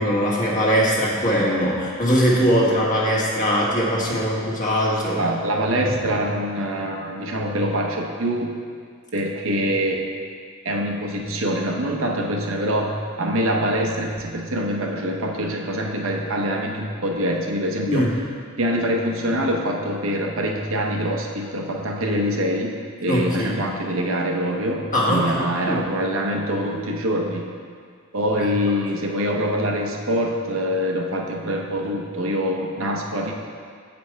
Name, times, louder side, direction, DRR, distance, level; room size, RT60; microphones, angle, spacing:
voice 1, 0.0-5.2 5.8-5.9 17.9-18.1 23.1-23.7 24.9-25.8, equal, 40° left, -4 dB, 1.4 m, -21 dB
voice 2, 5.2-8.5 9.1-10.1 10.6-18.1 18.6-22.7 23.0-27.5 28.1-33.3, equal, 70° right, 1 dB, 0.8 m, -24 dB
8.4 x 5.2 x 4.6 m, 2.1 s
head